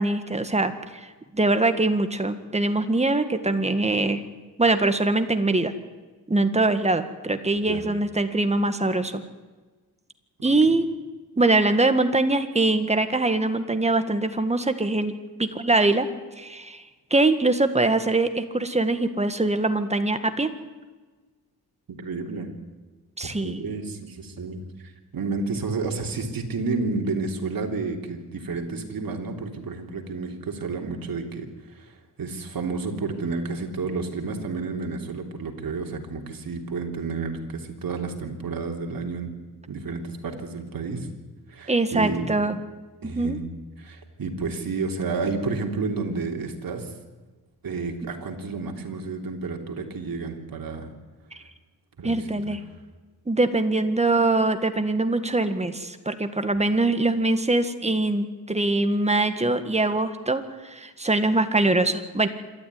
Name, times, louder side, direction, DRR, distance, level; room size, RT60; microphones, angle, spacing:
voice 1, 0.0-4.2 4.6-5.7 6.3-9.2 10.4-10.9 11.4-15.1 15.4-16.1 16.4-16.8 17.1-20.5 23.2-23.6 41.7-42.6 43.0-43.4 52.0-52.6 53.3-62.3, right 2 dB, 15° right, 9 dB, 1.8 m, -23 dB
voice 2, 21.9-22.5 23.4-39.3 39.7-41.1 41.5-42.3 43.0-43.5 43.8-46.9 47.6-50.9 52.0-52.2 52.5-52.6, right 4 dB, 60° right, 2 dB, 3.4 m, -31 dB
26.5 x 12.5 x 9.7 m, 1.3 s
cardioid pair, 105°, 39 cm